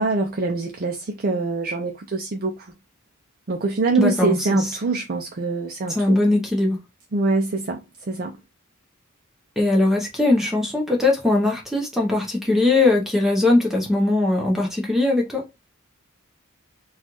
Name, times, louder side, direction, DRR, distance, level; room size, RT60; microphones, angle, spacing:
voice 1, 0.0-2.7 3.5-6.2 7.1-8.4, right 3 dB, 40° right, 0.5 m, -24 dB
voice 2, 4.0-4.8 5.9-6.8 9.6-15.5, left 2 dB, ahead, 0.8 m, -20 dB
4.2 x 2.4 x 3.0 m
head